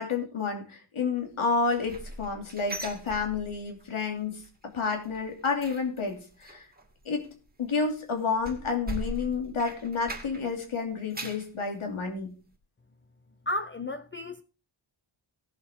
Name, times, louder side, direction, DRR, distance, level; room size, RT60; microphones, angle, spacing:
voice 1, 0.0-4.4 4.7-6.6 7.0-7.3 7.6-12.3, left 4 dB, 75° left, 2.8 m, -30 dB
sound 1, 1.5-3.9 4.1-4.5 4.8-10.6 10.9-11.5 12.0-12.1 12.5-12.6, right 1 dB, 20° right, 2.2 m, -41 dB
voice 2, 13.5-14.4, left 1 dB, 25° left, 0.5 m, -33 dB
18.0 x 7.6 x 3.6 m
wide cardioid pair, 165°, 50 cm